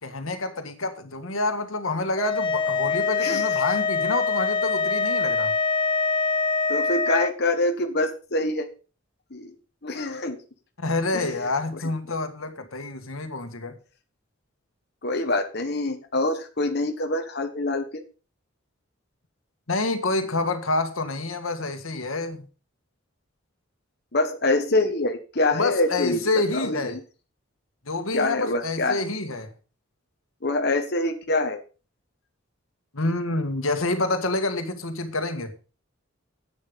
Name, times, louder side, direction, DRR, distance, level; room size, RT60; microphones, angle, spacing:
voice 1, 0.0-5.5 10.8-13.8 19.7-22.5 25.5-27.0 27.9-29.5 32.9-35.5, left 2 dB, 85° left, 1.8 m, -27 dB
sound 1, 2.2-7.3, left 4 dB, 25° left, 0.5 m, -24 dB
voice 2, 6.7-8.7 9.3-9.5 9.8-10.4 11.1-11.5 15.0-18.0 24.1-26.2 26.5-27.0 28.1-29.0 30.4-31.6, left 2 dB, 50° left, 1.5 m, -25 dB
10.5 x 9.0 x 5.4 m
head